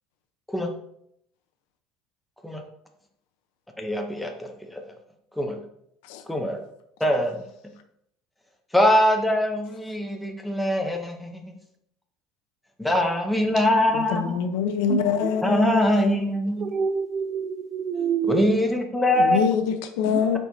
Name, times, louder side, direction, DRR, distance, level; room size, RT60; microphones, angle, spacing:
voice 1, 3.8-4.8 5.4-5.6 6.3-6.6 7.0-7.4 8.7-11.5 12.8-14.4 15.4-16.7 18.2-19.5, left 1 dB, 5° left, 0.7 m, -23 dB
voice 2, 13.9-16.2 19.2-20.4, left 7 dB, 85° left, 0.7 m, -25 dB
voice 3, 16.6-18.5 20.1-20.2, right 7 dB, 35° right, 0.5 m, -27 dB
8.0 x 4.7 x 2.7 m
cardioid pair, 160°, 0 cm